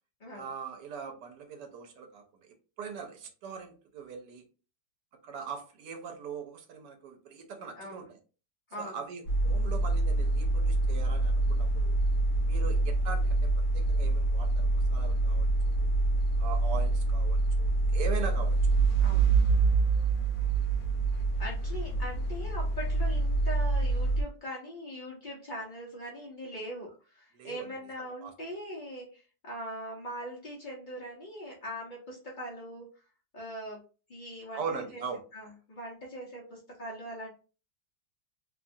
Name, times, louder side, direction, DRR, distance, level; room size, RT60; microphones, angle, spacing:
voice 1, 0.3-2.2 2.8-4.4 5.2-8.2 8.8-12.0 12.5-13.4 13.7-15.9 16.4-18.6 27.3-27.7 28.2-28.3 34.5-35.2, right 6 dB, 70° right, 4 dB, 1.1 m, -41 dB
voice 2, 7.8-8.1 8.7-9.0 12.6-12.8 19.0-19.4 21.4-32.9 33.3-33.8 34.1-35.0 35.3-37.3, equal, 80° left, -4 dB, 0.4 m, -41 dB
sound 1, 9.3-24.2, right 3 dB, 60° left, 0.8 m, -26 dB
2.9 x 2.3 x 2.6 m, 0.36 s
omnidirectional pair, 2.0 m